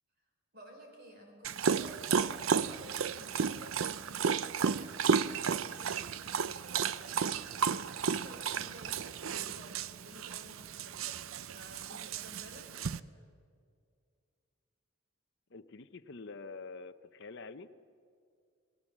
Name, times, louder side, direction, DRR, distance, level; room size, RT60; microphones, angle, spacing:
voice 1, 0.5-12.7 13.0-13.3, equal, 45° right, 3 dB, 5.3 m, -54 dB
Dog, 1.4-13.0, right 6 dB, 70° right, 0.6 m, -33 dB
voice 2, 15.5-17.7, left 4 dB, 55° left, 8 dB, 0.8 m, -46 dB
30.0 x 20.5 x 7.4 m, 2.3 s
head